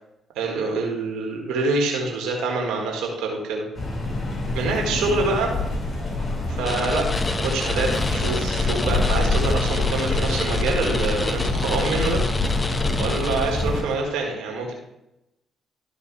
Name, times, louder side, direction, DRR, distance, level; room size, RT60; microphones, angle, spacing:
voice 1, 0.4-3.7 4.6-5.5 6.5-7.1 7.4-12.2 13.0-14.7, right 3 dB, 70° right, 1 dB, 1.8 m, -26 dB
sound 1, 3.8-13.8, left 2 dB, 45° left, 3.1 m, -25 dB
sound 2, 6.7-13.9, left 2 dB, 30° left, 1.0 m, -30 dB
13.0 x 4.6 x 3.3 m, 0.88 s
hypercardioid pair, 40°, 0 cm